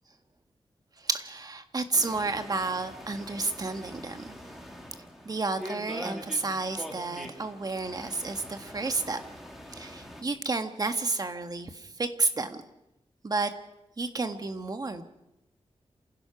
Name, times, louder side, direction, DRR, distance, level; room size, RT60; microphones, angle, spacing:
voice 1, 1.0-4.4 5.2-9.2 9.7-12.6 13.2-13.5 14.0-15.0, right 3 dB, 35° right, 7 dB, 1.6 m, -31 dB
sound 1, 1.9-10.2, equal, ahead, 2.9 m, -44 dB
27.5 x 16.0 x 6.0 m, 0.90 s
wide cardioid pair, 130°, 11 cm